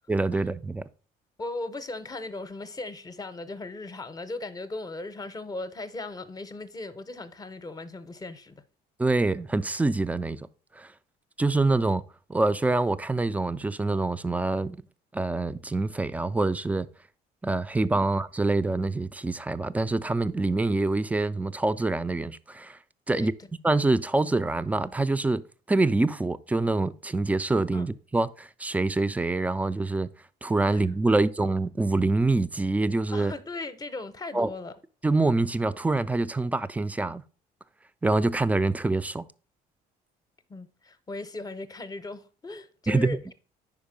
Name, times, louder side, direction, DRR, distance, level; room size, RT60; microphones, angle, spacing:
voice 1, 0.1-0.8 9.0-10.4 10.8-10.9 11.4-12.0 12.3-14.8 15.1-16.9 17.4-22.8 23.1-23.3 23.6-25.4 25.7-30.1 30.4-33.3 34.3-34.5 35.0-37.2 38.0-39.3 42.9-43.3, right 2 dB, 10° right, 0.3 m, -25 dB
voice 2, 1.4-8.6 18.0-18.1 23.1-23.3 27.7-27.9 30.7-30.8 33.1-34.7 40.5-43.3, left 2 dB, 20° left, 0.7 m, -37 dB
5.2 x 4.7 x 5.0 m
cardioid pair, 110°, 17 cm